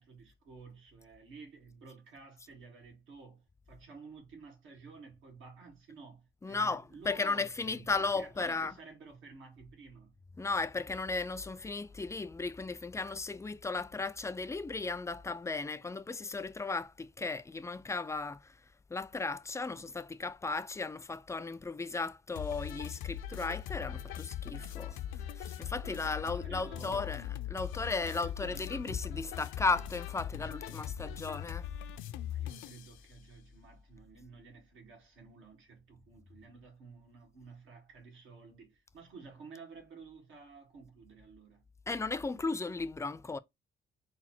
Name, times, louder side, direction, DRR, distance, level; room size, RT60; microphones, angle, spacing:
voice 1, 0.0-7.9 8.1-10.2 26.0-27.3 28.0-28.7 32.3-41.6, right 4 dB, 90° right, 1.5 m, -53 dB
voice 2, 6.4-8.7 10.4-18.6 18.9-25.0 25.3-31.7 41.9-43.4, left 3 dB, 15° left, 0.3 m, -35 dB
sound 1, 22.4-32.9, left 10 dB, 90° left, 0.4 m, -40 dB
3.9 x 2.0 x 4.3 m
cardioid pair, 90°, 20 cm